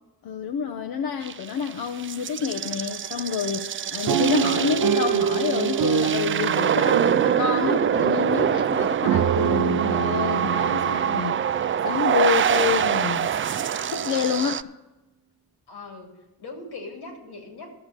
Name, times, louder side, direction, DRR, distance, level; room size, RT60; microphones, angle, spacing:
voice 1, 0.2-13.3 13.9-14.7, left 7 dB, 65° left, 6 dB, 0.7 m, -28 dB
sound 1, 1.2-14.6, right 8 dB, 35° right, 0.4 m, -25 dB
sound 2, 4.1-12.2 12.8-12.9 13.1-13.4, right 9 dB, 70° right, 0.7 m, -26 dB
voice 2, 15.7-16.1 16.4-17.7, left 3 dB, 85° left, 2 dB, 2.5 m, -39 dB
12.5 x 6.9 x 6.7 m, 1.0 s
supercardioid pair, 45°, 38 cm